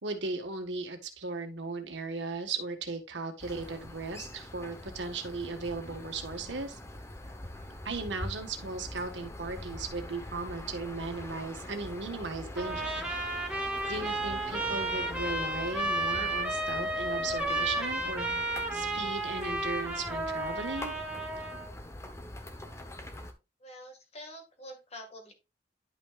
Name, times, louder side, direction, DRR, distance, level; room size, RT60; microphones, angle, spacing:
voice 1, 0.0-6.8 7.8-12.9 13.9-18.4 18.7-20.9, right 3 dB, 85° right, 6 dB, 1.6 m, -37 dB
sound 1, 3.4-23.3, left 1 dB, 15° left, 0.9 m, -43 dB
Trumpet, 12.6-21.7, right 1 dB, 5° right, 1.4 m, -33 dB
voice 2, 23.6-25.3, equal, 35° left, 4 dB, 1.9 m, -46 dB
11.0 x 5.7 x 2.4 m, 0.27 s
head